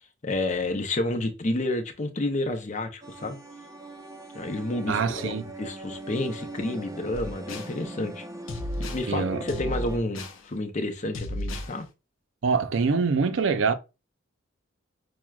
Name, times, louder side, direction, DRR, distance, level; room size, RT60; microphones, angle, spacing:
voice 1, 0.2-3.4 4.3-8.2 8.8-11.9, left 2 dB, 40° left, 0.6 m, -30 dB
sound 1, 3.0-10.0, right 1 dB, 15° right, 0.5 m, -40 dB
voice 2, 4.9-5.5 9.1-9.5 12.4-13.7, right 5 dB, 75° right, 0.5 m, -24 dB
sound 2, 7.1-7.7 8.5-9.1 9.5-10.4 11.1-11.7, left 1 dB, 80° left, 0.6 m, -33 dB
5.9 x 2.1 x 2.3 m
head